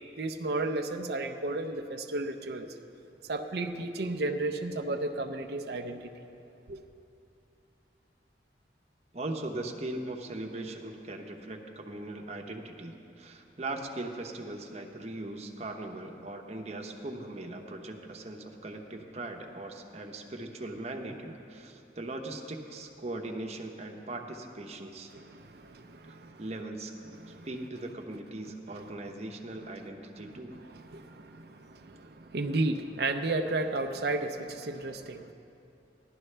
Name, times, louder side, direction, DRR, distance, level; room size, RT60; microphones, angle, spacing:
voice 1, 0.2-2.7 3.3-6.1 6.7-6.8 25.1-26.4 27.2-27.5 30.7-35.3, right 2 dB, 60° right, 5 dB, 0.5 m, -33 dB
voice 2, 9.1-25.1 26.1-26.9 27.4-30.6, right 2 dB, 35° right, 3 dB, 0.9 m, -39 dB
15.5 x 11.5 x 3.3 m, 2.7 s
head